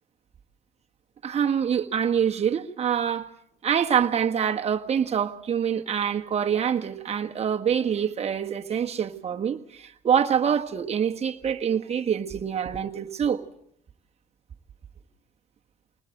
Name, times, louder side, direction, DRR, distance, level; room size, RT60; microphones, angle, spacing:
voice 1, 1.2-3.3 3.6-13.4, right 8 dB, 40° right, 1.5 m, -25 dB
21.0 x 20.5 x 7.8 m
cardioid pair, 110°, 17 cm